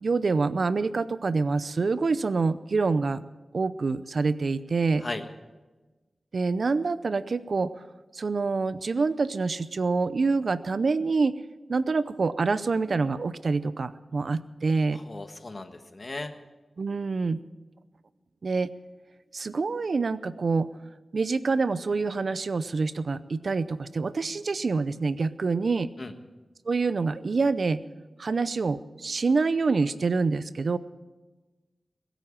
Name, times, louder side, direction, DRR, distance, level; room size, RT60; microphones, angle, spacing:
voice 1, 0.0-3.2 3.5-5.0 6.3-7.7 8.1-11.3 11.7-15.0 16.8-17.4 18.4-18.7 19.3-20.7 21.1-25.9 26.7-27.8 28.2-30.8, right 4 dB, 70° right, 15 dB, 0.6 m, -26 dB
voice 2, 14.9-16.3 26.0-26.1, left 2 dB, 45° left, 7 dB, 1.5 m, -36 dB
21.0 x 9.1 x 7.3 m, 1.2 s
wide cardioid pair, 70°, 0 cm